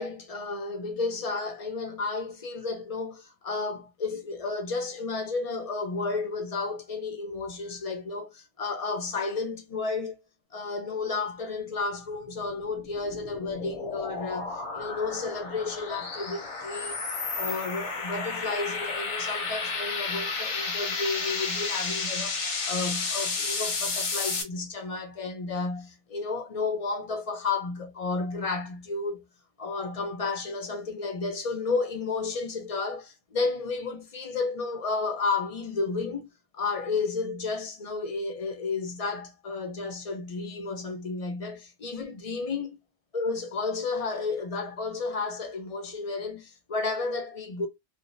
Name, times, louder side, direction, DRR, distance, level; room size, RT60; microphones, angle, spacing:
voice 1, 0.0-10.2 10.5-17.0 17.3-29.2 29.6-42.8 43.1-47.7, left 4 dB, 40° left, 0.6 m, -32 dB
sound 1, 12.4-24.4, left 4 dB, 85° left, 1.2 m, -32 dB
3.2 x 2.2 x 2.6 m
omnidirectional pair, 1.2 m